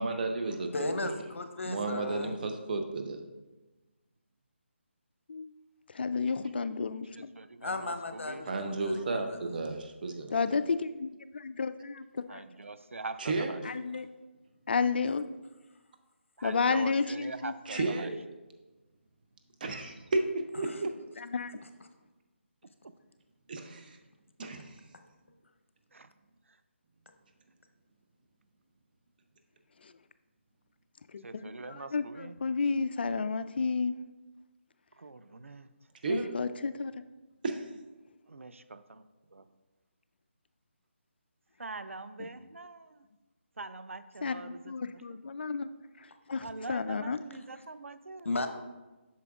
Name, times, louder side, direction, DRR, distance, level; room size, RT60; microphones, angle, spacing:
voice 1, 0.0-1.1 1.6-3.2 8.4-10.3 13.2-13.5 17.7-18.2 19.6-20.9 23.5-24.0 24.4-24.7 36.0-36.3 37.4-37.7, right 3 dB, 45° right, 5 dB, 0.8 m, -33 dB
voice 2, 0.7-2.4 7.6-9.4 20.6-20.8 48.2-48.5, left 2 dB, 75° left, 6 dB, 0.8 m, -35 dB
voice 3, 5.9-7.1 10.3-12.4 13.6-14.1 14.7-15.3 16.4-17.9 21.2-21.5 29.8-29.9 31.1-31.4 31.7-33.9 36.1-36.9 42.2-42.3 44.2-45.7 46.0-47.2, left 4 dB, 55° left, 12 dB, 0.3 m, -32 dB
voice 4, 7.4-8.5 12.3-13.6 16.4-18.1 22.8-22.9 25.9-26.1 31.2-32.4 35.0-35.7 38.3-39.0 39.3-39.5 41.6-43.1 43.6-45.2 46.4-48.3, right 3 dB, 90° right, 12 dB, 0.4 m, -43 dB
8.3 x 5.9 x 2.4 m, 1.2 s
figure-of-eight pair, 160°, 7 cm